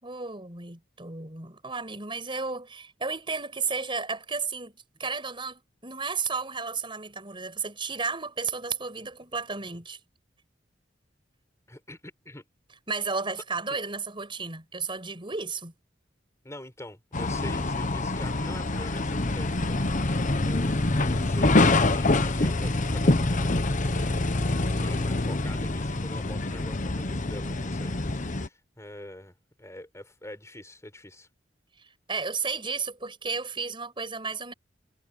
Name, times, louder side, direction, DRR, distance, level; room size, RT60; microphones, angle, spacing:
voice 1, 0.0-4.7 5.0-10.0 12.9-15.7 24.7-25.1 32.1-34.5, right 4 dB, 30° right, 6.3 m, -33 dB
voice 2, 11.7-12.5 16.4-23.6 24.8-31.3, left 1 dB, 15° left, 5.2 m, -45 dB
sound 1, 17.1-28.5, left 2 dB, 45° left, 1.1 m, -25 dB
head